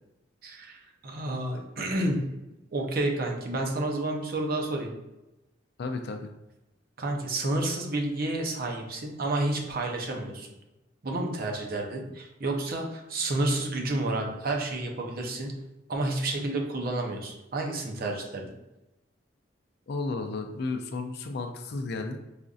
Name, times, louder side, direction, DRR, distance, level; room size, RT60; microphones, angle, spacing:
voice 1, 0.4-2.3 2.7-4.9 7.0-10.5 11.0-15.6 15.9-18.6, right 2 dB, 55° right, 1 dB, 0.6 m, -30 dB
voice 2, 5.8-6.3 19.9-22.2, left 3 dB, 60° left, 6 dB, 0.4 m, -33 dB
4.9 x 2.5 x 2.4 m, 0.96 s
head